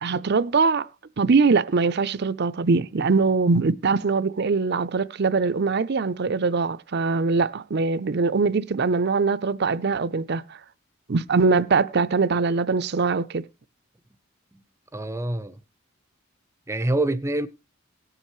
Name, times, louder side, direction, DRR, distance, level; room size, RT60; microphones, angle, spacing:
voice 1, 0.0-0.9 1.2-10.4 11.1-13.4, right 4 dB, 55° right, 0.6 m, -22 dB
voice 2, 14.9-15.6 16.7-17.5, right 1 dB, 15° right, 0.6 m, -26 dB
18.5 x 7.3 x 3.1 m
head